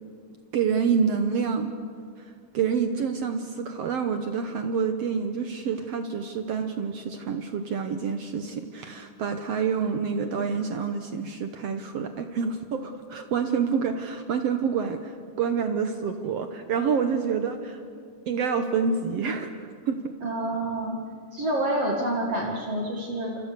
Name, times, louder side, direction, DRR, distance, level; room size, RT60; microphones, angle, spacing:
voice 1, 0.5-1.7 2.2-17.8 18.3-19.5 19.9-20.2, right 6 dB, 65° right, 7 dB, 1.7 m, -27 dB
voice 2, 20.2-21.0 21.3-23.4, right 1 dB, 50° right, 0 dB, 3.0 m, -28 dB
28.0 x 25.0 x 6.8 m, 2.3 s
omnidirectional pair, 3.7 m